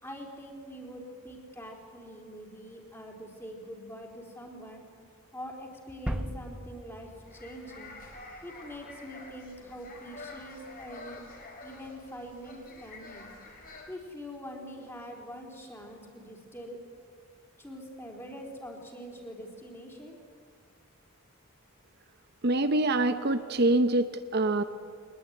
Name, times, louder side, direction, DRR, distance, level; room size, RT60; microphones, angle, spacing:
voice 1, 0.0-4.8 5.3-8.0 8.4-11.2 11.6-13.3 13.9-16.8 17.6-20.2, equal, 10° left, 1 dB, 4.0 m, -44 dB
sound 1, 6.1-8.7, equal, 5° right, 0.8 m, -38 dB
sound 2, 7.1-13.8, left 3 dB, 40° left, 4.7 m, -48 dB
voice 2, 22.4-24.6, right 2 dB, 50° right, 9 dB, 0.9 m, -25 dB
22.0 x 20.5 x 9.6 m, 2.3 s
head